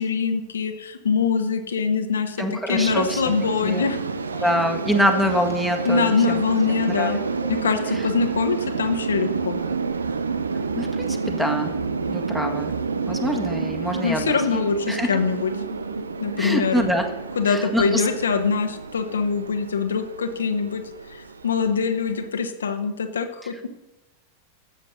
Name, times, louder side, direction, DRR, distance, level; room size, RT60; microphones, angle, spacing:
voice 1, 0.0-4.0 5.8-7.2 7.5-9.6 14.0-15.5 16.2-16.9 17.4-20.8 21.1-23.7, left 5 dB, 70° left, 6 dB, 1.1 m, -23 dB
voice 2, 2.4-3.2 3.6-3.8 4.3-6.4 6.7-7.5 7.9-8.1 10.8-11.7 12.1-12.7 13.1-14.6 14.9-15.1 16.4-17.1 17.4-18.1, equal, 5° right, 4 dB, 1.8 m, -25 dB
sound 1, 2.7-22.3, right 4 dB, 75° right, 0.7 m, -29 dB
13.5 x 7.9 x 5.6 m, 0.97 s
figure-of-eight pair, 90°, 0 cm